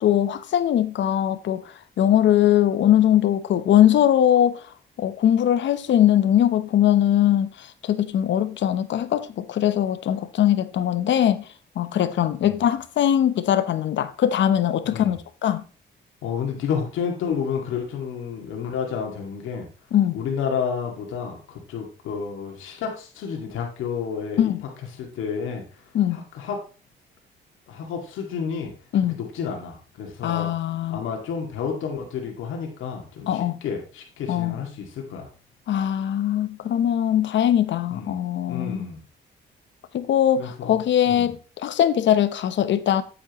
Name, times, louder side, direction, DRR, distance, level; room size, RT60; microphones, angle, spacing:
voice 1, 0.0-1.6 2.0-4.6 5.0-11.4 11.8-15.7 19.9-20.2 24.4-24.6 25.9-26.2 28.9-29.2 30.2-31.0 33.3-33.6 34.3-34.6 35.7-38.8 39.9-43.0, left 11 dB, 65° left, 0.9 m, -21 dB
voice 2, 14.8-15.2 16.2-19.7 20.1-24.5 25.0-25.6 26.1-26.6 27.7-28.7 29.2-30.5 30.9-35.3 37.9-38.2 38.5-39.0 40.4-40.7 41.1-41.3, left 6 dB, 85° left, 2.1 m, -30 dB
8.6 x 8.5 x 3.0 m
cardioid pair, 90°, 20 cm